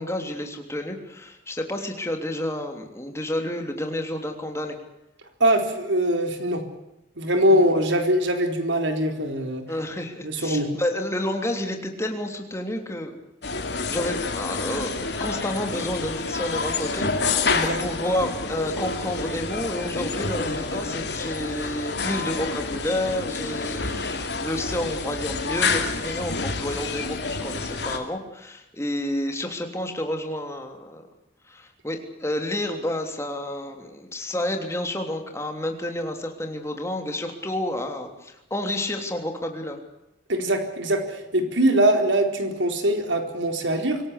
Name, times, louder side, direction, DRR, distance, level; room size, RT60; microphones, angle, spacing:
voice 1, 0.0-4.8 7.5-7.6 9.7-13.2 13.7-31.1 31.5-39.8, left 1 dB, 15° left, 4 dB, 3.2 m, -30 dB
voice 2, 5.4-6.6 7.2-9.6 10.2-10.7 17.5-17.8 40.3-44.0, right 1 dB, 85° right, 5 dB, 4.2 m, -22 dB
sound 1, 13.4-28.0, left 4 dB, 65° left, 3.0 m, -28 dB
25.5 x 18.0 x 8.3 m, 0.92 s
head